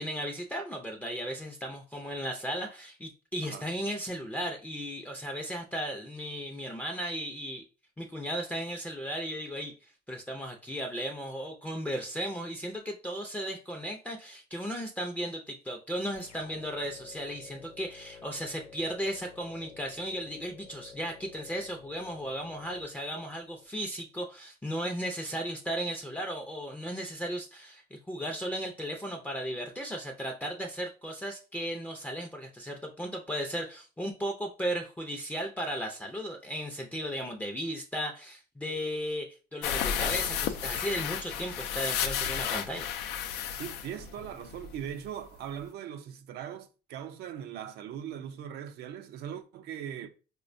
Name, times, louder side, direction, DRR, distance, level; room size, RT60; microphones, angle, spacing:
voice 1, 0.0-7.6 8.0-42.9, equal, 10° left, 0.4 m, -36 dB
sound 1, 16.2-23.7, left 5 dB, 50° left, 0.7 m, -51 dB
sound 2, 39.6-44.9 45.2-45.3 45.6-45.7, left 8 dB, 90° left, 0.4 m, -33 dB
voice 2, 43.5-50.1, right 9 dB, 75° right, 0.5 m, -40 dB
4.1 x 2.1 x 2.5 m
cardioid pair, 110°, 17 cm